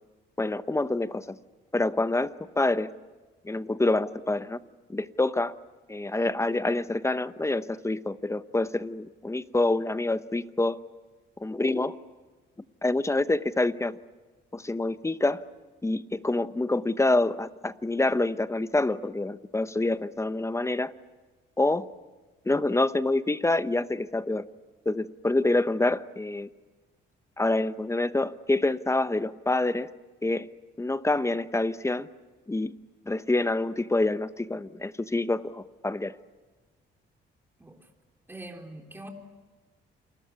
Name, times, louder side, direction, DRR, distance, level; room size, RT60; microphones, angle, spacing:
voice 1, 0.4-1.4 1.7-2.9 3.4-4.6 4.9-5.5 5.9-10.8 11.4-12.0 12.8-14.0 14.5-15.4 15.8-20.9 21.6-21.9 22.5-24.5 24.8-26.5 27.4-29.9 30.2-30.5 30.8-32.1 32.5-32.7 33.1-36.2, left 2 dB, 15° left, 13 dB, 0.9 m, -27 dB
voice 2, 38.3-39.1, right 1 dB, 10° right, 2 dB, 3.8 m, -43 dB
29.0 x 20.5 x 9.6 m, 1.3 s
cardioid pair, 90°, 20 cm